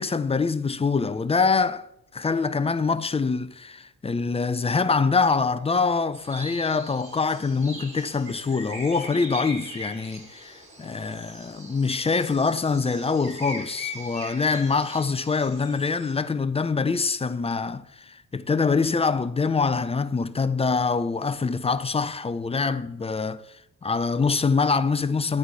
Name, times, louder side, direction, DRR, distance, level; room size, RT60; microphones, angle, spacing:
voice 1, 0.0-1.9 2.1-23.4 23.8-25.4, left 4 dB, 20° left, 0.6 m, -24 dB
sound 1, 6.1-16.1, left 1 dB, 25° right, 4.0 m, -41 dB
11.0 x 4.3 x 8.0 m
cardioid pair, 90°, 30 cm